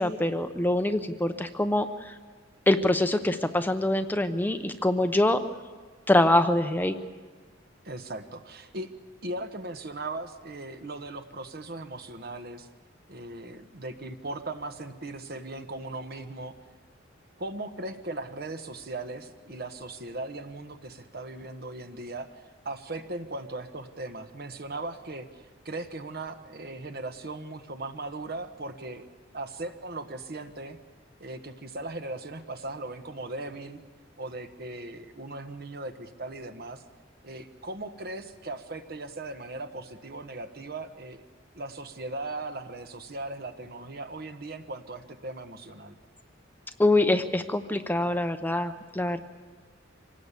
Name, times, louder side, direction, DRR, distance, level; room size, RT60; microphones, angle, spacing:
voice 1, 0.0-2.1 2.7-5.4 6.1-7.0 46.8-49.2, left 1 dB, 10° left, 8 dB, 0.8 m, -24 dB
voice 2, 7.8-8.9 9.2-12.7 13.1-16.5 17.4-22.3 22.6-29.1 29.3-30.8 31.2-33.8 34.2-36.8 37.2-41.2 41.5-45.9, right 2 dB, 55° right, 7 dB, 1.4 m, -38 dB
26.0 x 18.0 x 8.4 m, 1.5 s
head